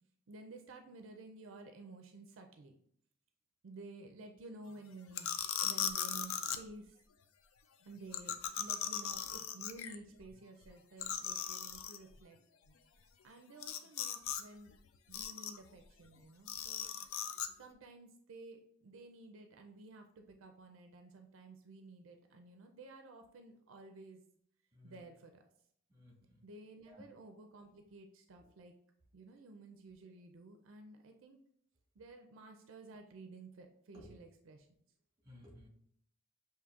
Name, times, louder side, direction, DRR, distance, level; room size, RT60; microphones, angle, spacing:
voice 1, 0.3-2.8 3.6-7.0 7.8-12.4 13.2-14.7 15.1-16.9 17.6-24.2 24.8-25.4 26.4-28.7 29.1-31.4 32.0-34.7, right 2 dB, 75° right, 4 dB, 0.4 m, -53 dB
sound 1, 5.2-6.6 8.1-10.0 10.3-10.4 10.6-10.7 11.0-12.0 13.6-14.4 14.7-15.7 16.5-17.5, left 9 dB, 90° left, 0.4 m, -38 dB
voice 2, 25.9-26.4 26.9-27.0 33.9-34.1 35.2-35.7, left 1 dB, 20° right, -2 dB, 1.5 m, -56 dB
6.5 x 2.7 x 2.4 m, 0.67 s
head